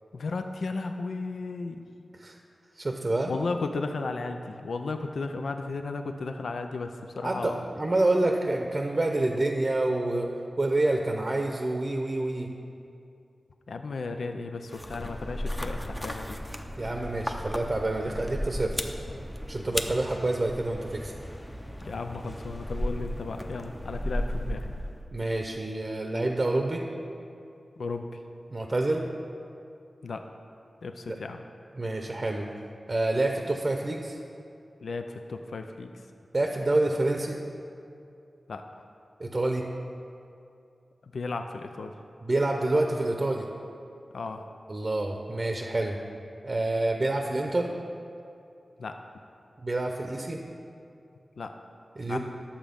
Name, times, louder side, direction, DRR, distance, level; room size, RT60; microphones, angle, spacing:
voice 1, 0.1-1.8 3.3-7.6 13.7-16.4 21.9-24.7 27.8-28.2 30.0-30.3 30.8-31.4 34.8-35.9 38.5-38.6 41.0-42.0 44.1-44.4 48.8-49.0 51.4-51.5 52.1-52.2, left 3 dB, 85° left, 6 dB, 0.5 m, -34 dB
voice 2, 2.8-3.3 7.2-10.3 10.6-12.5 16.8-18.7 19.5-21.1 25.1-26.8 28.5-29.1 31.8-32.5 32.9-34.2 36.3-37.4 39.2-39.6 42.2-43.4 44.7-46.0 46.4-47.7 49.6-50.4 52.0-52.2, right 2 dB, 35° right, 3 dB, 0.7 m, -27 dB
sound 1, 14.7-25.1, equal, 10° left, 0.6 m, -35 dB
11.5 x 7.3 x 5.2 m, 2.5 s
wide cardioid pair, 110°, 0 cm